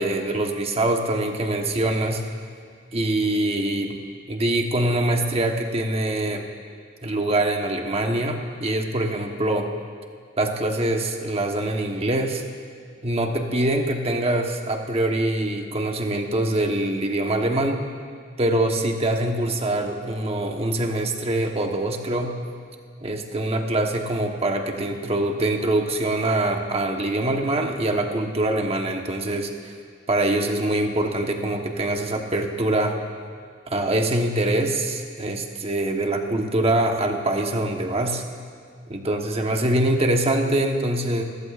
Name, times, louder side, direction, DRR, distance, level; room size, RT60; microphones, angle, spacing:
voice 1, 0.0-2.2 2.9-4.0 4.3-6.4 7.0-9.7 10.4-12.4 13.0-17.8 18.4-22.4 23.0-29.7 30.1-32.9 33.7-38.2 38.9-41.2, right 1 dB, 35° right, 3 dB, 1.2 m, -24 dB
26.5 x 15.0 x 2.5 m, 2.2 s
head